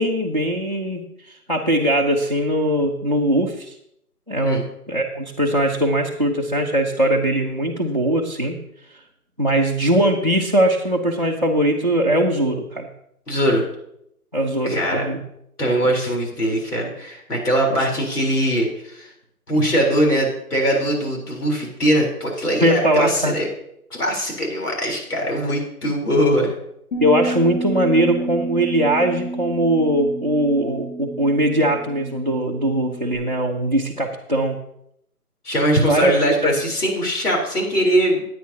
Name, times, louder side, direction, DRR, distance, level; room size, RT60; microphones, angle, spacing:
voice 1, 0.0-3.7 4.3-4.6 4.9-8.6 9.4-12.9 14.3-15.2 17.7-17.9 19.5-19.7 22.6-23.3 27.0-34.6 35.8-36.5, right 1 dB, 30° right, 0 dB, 0.6 m, -20 dB
voice 2, 13.3-13.6 14.6-15.1 15.6-19.1 19.5-23.5 23.9-26.5 35.4-38.2, equal, 75° left, 0 dB, 3.8 m, -21 dB
Bass guitar, 26.9-33.2, right 2 dB, 55° left, 4.4 m, -30 dB
14.5 x 9.2 x 2.8 m, 0.75 s
hypercardioid pair, 175°, 46 cm